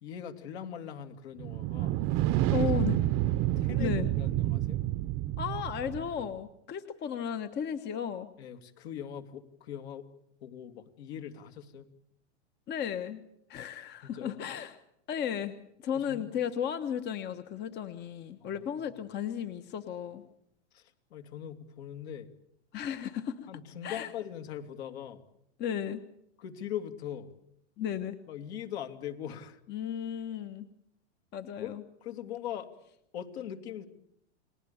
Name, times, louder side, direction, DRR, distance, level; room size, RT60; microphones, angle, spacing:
voice 1, 0.0-2.0 2.5-2.7 3.6-4.9 8.4-10.1 10.4-11.9 14.0-14.3 15.9-16.3 18.4-18.7 20.7-22.3 23.5-25.2 26.4-27.3 28.3-29.6 31.6-32.7 33.1-33.9, left 9 dB, 60° left, 6 dB, 2.9 m, -41 dB
sound 1, 1.4-6.3, right 15 dB, 35° right, 0.9 m, -29 dB
voice 2, 2.5-3.0 3.8-4.1 5.4-8.3 12.7-13.2 13.5-14.8 15.1-15.6 15.8-20.2 22.7-23.5 23.8-24.1 25.6-26.0 27.8-28.2 29.7-30.7 31.3-31.8, left 9 dB, 30° left, 10 dB, 1.2 m, -34 dB
30.0 x 20.0 x 7.1 m, 0.76 s
hypercardioid pair, 130°, 35 cm